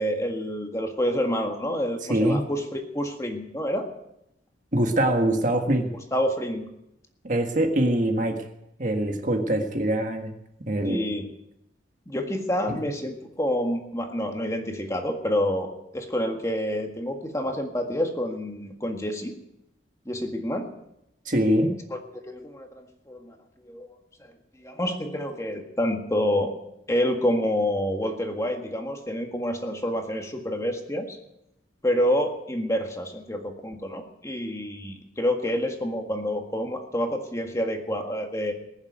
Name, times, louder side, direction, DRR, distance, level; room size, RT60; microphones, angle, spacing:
voice 1, 0.0-3.9 6.1-6.7 10.8-11.3 12.1-19.3 20.1-20.7 21.9-23.9 24.2-24.3 24.6-26.5 26.9-31.2 31.8-38.5, equal, 15° left, 3 dB, 1.7 m, -28 dB
voice 2, 2.1-2.4 4.7-5.9 7.2-8.4 8.8-10.3 10.6-11.1 12.7-12.8 21.3-21.7, right 1 dB, 40° right, 4 dB, 1.7 m, -23 dB
20.5 x 7.4 x 9.3 m, 0.83 s
head